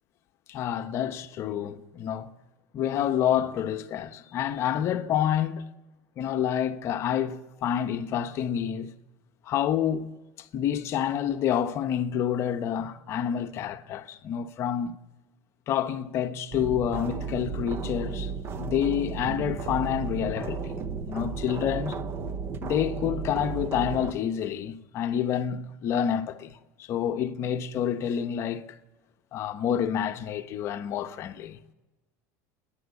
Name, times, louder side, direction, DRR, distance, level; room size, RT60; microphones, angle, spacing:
voice 1, 0.5-2.3 2.7-5.7 6.2-8.9 9.4-10.1 10.4-15.0 15.7-18.3 18.6-20.8 21.1-22.0 22.6-28.7 29.3-31.6, left 9 dB, 35° left, 1.0 m, -28 dB
sound 1, 16.5-24.1, right 5 dB, 30° right, 1.0 m, -34 dB
30.0 x 10.5 x 8.3 m
supercardioid pair, 160°, 8 cm